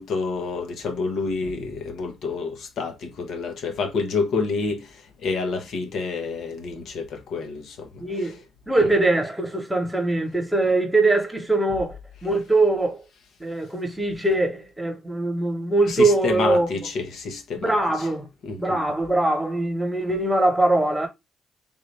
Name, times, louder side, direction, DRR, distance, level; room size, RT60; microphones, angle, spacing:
voice 1, 0.0-8.4 15.9-18.1 18.4-18.8, left 4 dB, 70° left, 0.9 m, -28 dB
voice 2, 8.0-8.4 8.7-13.0 13.4-16.7 17.6-18.3 18.6-21.1, right 2 dB, 10° right, 1.2 m, -22 dB
3.5 x 2.6 x 3.3 m
cardioid pair, 90°, 0 cm